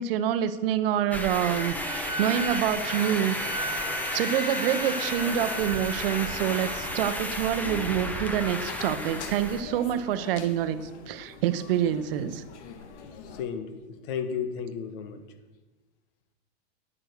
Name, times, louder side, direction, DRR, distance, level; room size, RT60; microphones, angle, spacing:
voice 1, 0.0-12.4, right 10 dB, 55° right, 12 dB, 0.9 m, -27 dB
sound 1, 1.1-9.6, left 1 dB, 5° left, 0.7 m, -33 dB
sound 2, 1.5-7.2, right 1 dB, 15° right, 1.1 m, -36 dB
sound 3, 7.6-13.4, left 6 dB, 80° left, 1.4 m, -43 dB
voice 2, 13.0-15.2, left 7 dB, 55° left, 10 dB, 1.3 m, -34 dB
10.0 x 9.0 x 6.6 m, 1.2 s
supercardioid pair, 155°, 33 cm